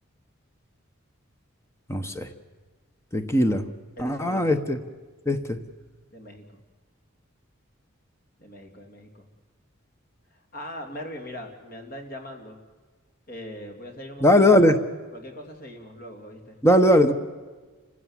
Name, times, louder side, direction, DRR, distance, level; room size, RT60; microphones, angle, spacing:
voice 1, 1.9-2.3 3.1-3.7 4.0-4.8 5.3-5.6 14.2-14.7 16.6-17.1, left 1 dB, 15° left, 8 dB, 1.1 m, -19 dB
voice 2, 4.0-4.6 6.1-6.6 8.4-9.3 10.3-12.6 13.3-14.7 15.1-16.6, left 1 dB, 45° left, 4 dB, 2.8 m, -41 dB
29.0 x 16.0 x 7.4 m, 1.4 s
head